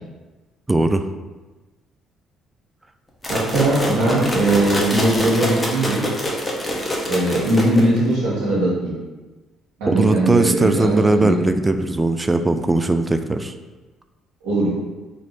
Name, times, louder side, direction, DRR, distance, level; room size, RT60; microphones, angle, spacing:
voice 1, 0.7-1.1 9.9-13.6, right 2 dB, 20° right, 8 dB, 0.3 m, -19 dB
sound 1, 3.2-8.1, equal, 15° left, 0.9 m, -25 dB
voice 2, 3.3-6.0 7.1-8.9 9.8-11.4 14.4-14.7, right 1 dB, 85° right, -10 dB, 1.1 m, -20 dB
3.0 x 2.6 x 4.3 m, 1.2 s
hypercardioid pair, 60°, 0 cm